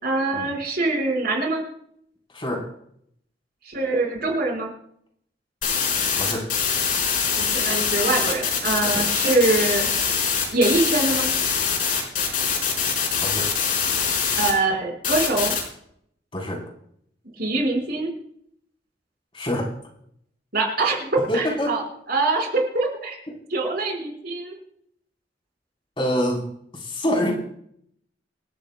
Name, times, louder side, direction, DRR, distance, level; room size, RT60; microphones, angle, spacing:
voice 1, 0.0-1.6 3.7-4.7 7.4-9.9 10.5-11.3 14.3-15.5 17.4-18.1 20.5-21.8 22.1-23.2 23.5-24.5, right 2 dB, 60° right, 1 dB, 4.8 m, -23 dB
voice 2, 2.3-2.7 6.2-6.5 8.9-9.1 13.2-13.5 16.3-16.6 19.3-19.7 21.2-21.8 26.0-26.4 26.7-27.3, equal, 30° left, -1 dB, 3.7 m, -26 dB
sound 1, 5.6-14.5 15.0-15.6, left 6 dB, 50° left, 4.5 m, -23 dB
27.0 x 13.0 x 2.2 m, 0.69 s
head